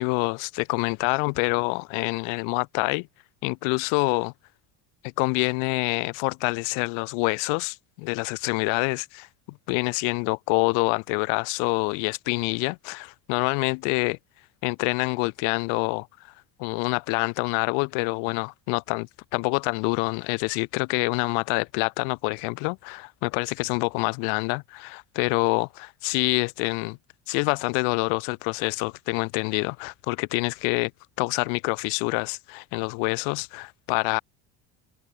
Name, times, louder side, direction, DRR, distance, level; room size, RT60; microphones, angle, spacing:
voice 1, 0.0-3.1 3.4-4.3 5.2-14.2 14.6-16.1 16.6-27.0 27.3-30.9 31.2-34.2, left 40 dB or more, 90° left, 1.1 m, -26 dB
cardioid pair, 160°, 45 cm